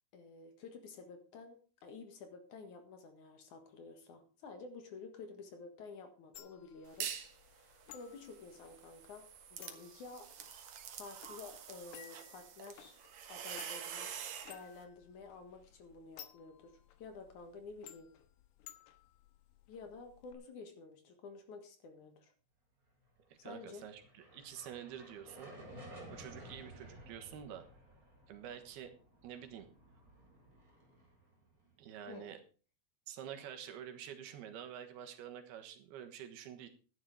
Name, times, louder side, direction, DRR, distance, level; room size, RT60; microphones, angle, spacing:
voice 1, 0.1-7.1 7.5-9.2 9.5-13.0 13.3-14.1 14.5-18.1 19.7-22.3 23.4-23.9 32.1-32.3, left 4 dB, 60° left, 6 dB, 2.8 m, -51 dB
sound 1, 6.3-20.3, left 11 dB, 90° left, 3.1 m, -58 dB
sound 2, 6.8-7.4 7.8-14.6, right 8 dB, 60° right, 2.2 m, -46 dB
voice 2, 23.4-27.6 28.3-28.9 29.2-29.7 31.8-32.4 33.1-36.7, right 9 dB, 85° right, 6 dB, 3.4 m, -48 dB
sound 3, 23.5-31.9, right 1 dB, 20° right, 4.3 m, -55 dB
11.5 x 10.0 x 4.7 m, 0.37 s
omnidirectional pair, 4.4 m